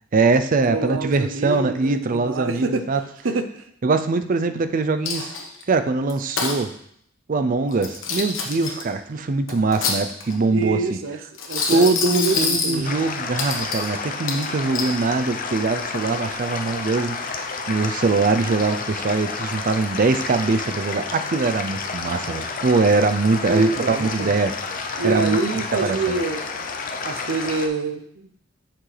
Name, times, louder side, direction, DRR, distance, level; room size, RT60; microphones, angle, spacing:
voice 1, 0.1-3.0 3.8-5.3 5.7-6.7 7.3-11.0 11.7-17.2 17.7-25.4 25.8-26.0, right 3 dB, 45° right, 9 dB, 0.5 m, -22 dB
voice 2, 0.7-2.9 3.2-3.6 10.5-11.2 11.4-12.9 23.5-24.3 25.0-26.7 27.0-28.3, right 3 dB, 80° right, 9 dB, 0.7 m, -26 dB
Coin (dropping), 5.0-5.6 6.1-6.6 7.7-8.8 9.5-10.4 11.3-12.8 13.4-13.9 14.3-14.9, left 4 dB, 75° left, 1.2 m, -26 dB
sound 1, 12.8-27.7, left 4 dB, 45° left, 0.6 m, -30 dB
7.5 x 6.0 x 3.3 m, 0.69 s
head